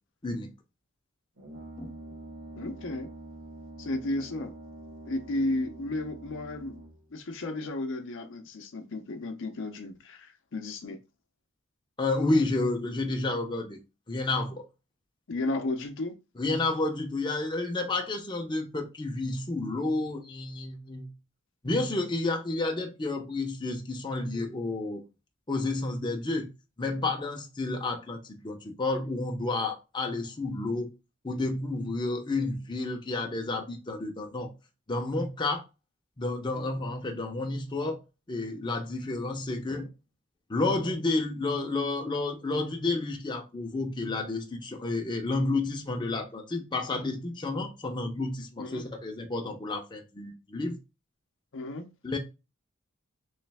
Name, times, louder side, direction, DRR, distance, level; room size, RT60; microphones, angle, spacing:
Brass instrument, 1.4-7.1, right 2 dB, 85° right, 1.1 m, -45 dB
voice 1, 2.6-3.1 3.8-4.5 5.1-6.7 7.1-11.0 15.3-16.1 36.6-36.9 48.6-48.8 51.5-51.8, left 2 dB, 65° left, 0.6 m, -33 dB
voice 2, 12.0-13.8 14.1-14.6 16.4-21.1 21.6-25.0 25.5-26.5 26.8-30.9 31.2-34.5 34.9-35.6 36.2-38.0 38.3-39.9 40.5-50.8 52.0-52.2, left 2 dB, 20° left, 0.6 m, -30 dB
3.2 x 3.2 x 3.4 m
head